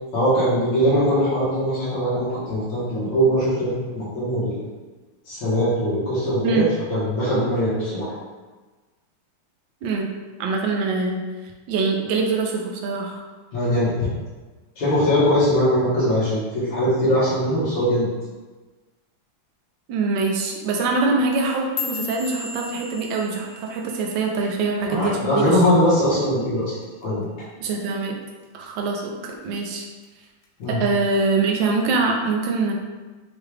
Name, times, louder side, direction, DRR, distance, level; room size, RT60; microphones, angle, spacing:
voice 1, 0.1-4.6 5.3-6.6 6.9-8.2 13.5-14.1 14.8-18.1 24.9-26.7 27.0-27.2 30.6-30.8, equal, 90° left, -10 dB, 2.4 m, -21 dB
voice 2, 10.4-11.2 11.7-13.2 19.9-25.6 27.6-28.1 28.5-29.9 30.7-32.7, right 3 dB, 70° right, 1 dB, 1.2 m, -24 dB
sound 1, 21.3-25.7 26.0-26.4 26.8-27.2 27.6-27.8 28.4-28.8 29.2-30.1 30.4-30.9 31.6-31.7, left 5 dB, 70° left, 1.3 m, -36 dB
6.3 x 2.4 x 3.3 m, 1.3 s
omnidirectional pair, 2.4 m